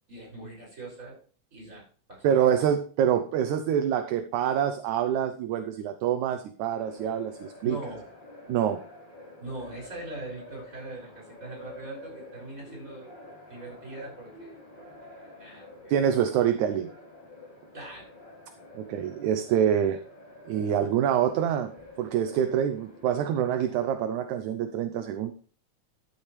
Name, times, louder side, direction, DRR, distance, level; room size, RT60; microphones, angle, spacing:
voice 1, 0.1-1.2 1.5-2.7 7.6-8.1 9.4-15.9 17.7-18.2, right 2 dB, 25° right, -1 dB, 6.0 m, -42 dB
voice 2, 2.2-7.8 8.5-8.8 15.9-16.9 18.8-20.0 20.5-21.7 22.0-25.3, right 9 dB, 75° right, 9 dB, 2.1 m, -26 dB
sound 1, 6.8-23.9, left 1 dB, 15° left, 3.6 m, -49 dB
12.0 x 8.1 x 3.2 m, 0.43 s
omnidirectional pair, 3.6 m